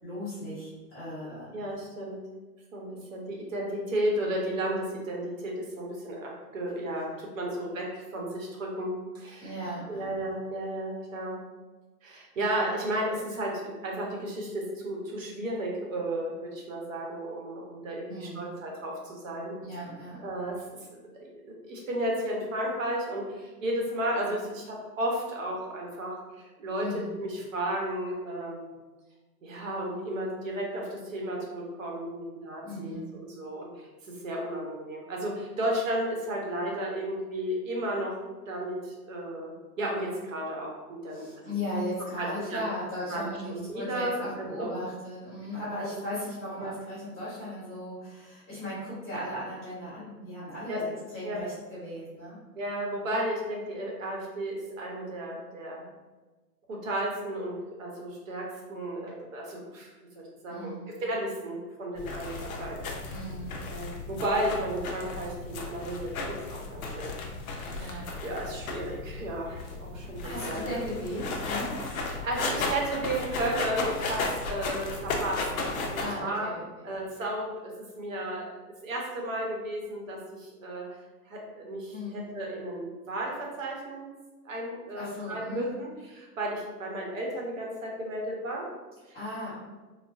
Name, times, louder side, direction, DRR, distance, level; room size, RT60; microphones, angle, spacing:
voice 1, 0.0-1.5 9.4-10.1 18.1-18.5 19.6-20.3 26.8-27.1 32.6-33.0 41.1-52.4 60.5-60.9 63.1-63.5 67.7-68.1 70.2-72.1 76.0-76.9 81.9-82.3 84.9-85.7 89.1-89.6, left 1 dB, 10° left, -18 dB, 0.6 m, -37 dB
voice 2, 1.5-2.2 2.7-9.5 9.9-11.4 12.0-19.6 20.2-20.6 21.2-28.8 29.4-38.2 38.5-41.3 42.2-42.6 43.1-43.2 43.5-44.7 45.8-45.9 46.6-46.7 50.7-50.8 51.2-51.4 52.5-55.8 56.7-59.9 60.1-63.1 63.6-67.1 67.5-70.7 72.0-75.4 75.7-76.5 76.8-77.5 77.9-78.5 78.8-80.9 81.3-84.1 84.4-88.6 89.1-89.2, right 1 dB, 55° right, -1 dB, 0.9 m, -33 dB
sound 1, 62.0-76.1, left 3 dB, 60° left, 0.7 m, -35 dB
3.9 x 2.1 x 2.5 m, 1.2 s
hypercardioid pair, 175°, 48 cm